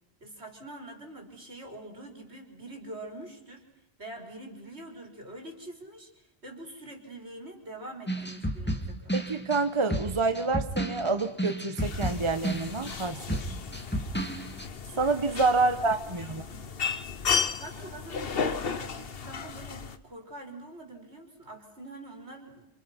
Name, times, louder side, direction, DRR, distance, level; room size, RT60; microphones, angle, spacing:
voice 1, 0.2-3.6 4.0-9.2 15.6-16.8 17.5-22.7, right 1 dB, 75° right, 4 dB, 4.6 m, -45 dB
sound 1, 8.1-14.7, right 1 dB, 10° left, 2.4 m, -32 dB
voice 2, 9.1-13.4 15.0-16.4, right 3 dB, 30° right, 9 dB, 1.2 m, -27 dB
sound 2, 11.8-20.0, left 6 dB, 60° left, 1.3 m, -34 dB
28.0 x 27.5 x 5.8 m, 0.84 s
omnidirectional pair, 1.1 m